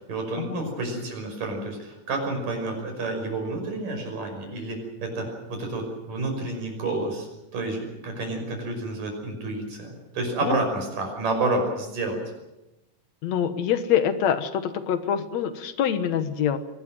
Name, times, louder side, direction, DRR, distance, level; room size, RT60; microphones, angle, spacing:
voice 1, 0.1-7.3 7.5-12.2, right 2 dB, 75° right, 3 dB, 7.3 m, -29 dB
voice 2, 13.2-16.6, left 9 dB, 60° left, 10 dB, 2.3 m, -25 dB
24.5 x 19.0 x 7.7 m, 0.95 s
omnidirectional pair, 3.8 m